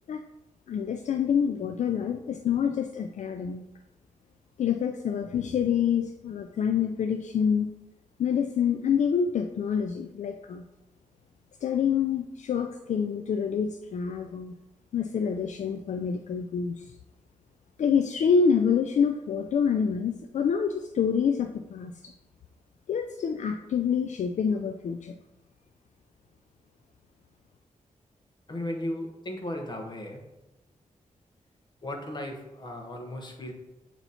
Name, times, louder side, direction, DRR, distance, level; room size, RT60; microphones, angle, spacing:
voice 1, 0.7-3.6 4.6-7.7 8.2-10.7 11.6-14.5 14.9-16.9 17.8-22.1 22.9-25.2, left 7 dB, 65° left, 6 dB, 0.4 m, -27 dB
voice 2, 28.5-30.2 31.8-33.5, left 1 dB, 35° left, 2 dB, 1.1 m, -35 dB
7.9 x 3.0 x 4.1 m, 0.94 s
wide cardioid pair, 115°, 13 cm